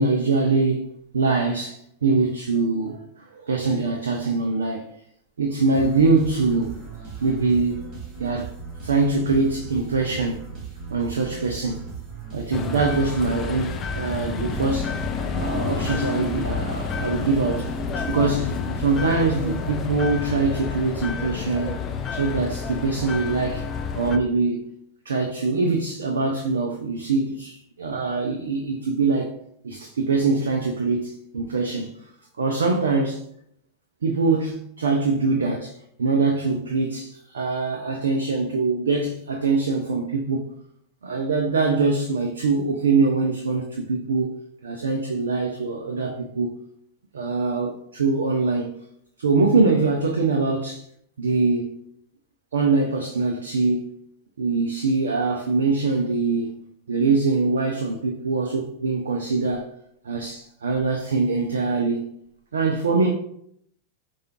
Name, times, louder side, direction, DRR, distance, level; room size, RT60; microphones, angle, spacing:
voice 1, 0.0-3.1 3.3-4.9 5.4-6.7 7.2-7.9 8.2-8.6 8.8-10.5 10.9-11.8 12.3-15.0 15.3-17.7 18.0-23.7 23.9-24.7 25.1-29.3 29.6-31.9 32.4-33.2 34.0-35.7 36.0-40.5 41.0-44.3 44.6-46.6 47.1-48.7 49.2-50.8 51.2-51.8 52.5-54.0 54.4-56.6 56.9-59.7 60.0-62.1 62.5-63.1, right 3 dB, 70° right, 0.3 m, -23 dB
sound 1, 5.7-20.3, right 5 dB, 35° right, 1.1 m, -38 dB
sound 2, 12.5-24.2, left 5 dB, 30° left, 0.3 m, -29 dB
4.8 x 2.3 x 2.9 m
figure-of-eight pair, 90°, 0 cm